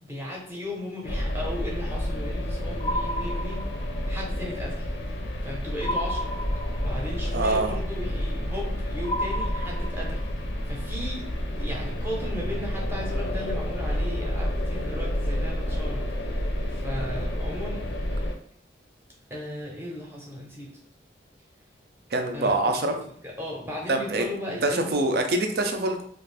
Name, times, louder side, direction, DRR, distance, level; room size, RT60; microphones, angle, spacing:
voice 1, 0.0-3.6 4.1-4.9 5.4-6.3 6.8-10.3 10.7-11.2 11.5-17.8 19.3-20.7 22.3-22.6 23.2-24.9, left 1 dB, 15° right, -3 dB, 0.6 m, -36 dB
sound 1, 1.0-18.3, equal, 90° left, 0.5 m, -30 dB
sound 2, 2.8-4.0 5.8-7.0 9.0-10.3, equal, 25° left, 0.3 m, -32 dB
voice 2, 7.3-7.7 22.1-22.9 23.9-24.3 24.6-26.0, right 2 dB, 60° right, 5 dB, 0.4 m, -24 dB
2.5 x 2.4 x 3.3 m, 0.63 s
head